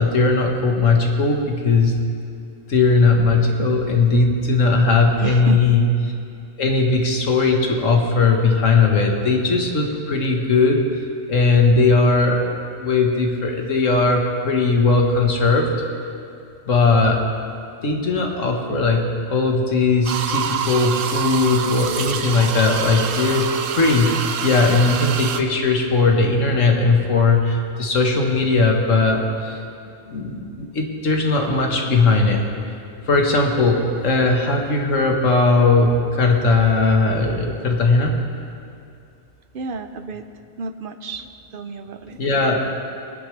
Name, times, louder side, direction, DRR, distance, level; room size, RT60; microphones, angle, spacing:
voice 1, 0.0-1.9 2.7-5.9 6.6-10.8 11.3-12.4 12.7-15.7 16.7-17.2 17.8-19.0 19.3-24.1 24.4-29.6 30.1-32.4 33.1-38.1 42.2-42.8, left 3 dB, 80° left, 2 dB, 1.7 m, -18 dB
voice 2, 5.2-5.6 39.5-40.3 40.6-41.3 41.5-42.2, right 4 dB, 55° right, 9 dB, 0.6 m, -30 dB
sound 1, 20.1-25.4, right 7 dB, 80° right, 1.1 m, -26 dB
22.0 x 9.8 x 3.3 m, 2.5 s
omnidirectional pair, 1.3 m